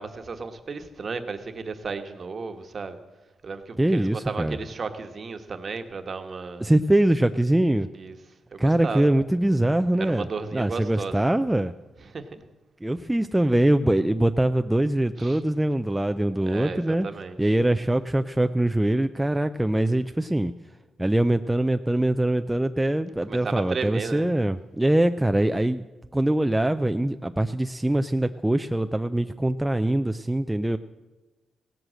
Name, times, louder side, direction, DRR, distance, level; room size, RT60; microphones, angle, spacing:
voice 1, 0.0-3.0 3.4-6.7 7.9-8.1 8.5-9.1 9.9-11.1 12.0-12.4 15.2-15.4 16.5-17.4 23.3-24.3, right 4 dB, 45° right, 7 dB, 1.2 m, -34 dB
voice 2, 3.8-4.6 6.6-7.9 8.6-11.7 12.8-17.1 17.4-20.5 21.0-25.9 26.1-30.8, right 1 dB, 10° right, 8 dB, 0.4 m, -23 dB
16.5 x 7.9 x 7.6 m, 1.2 s
cardioid pair, 100°, 0 cm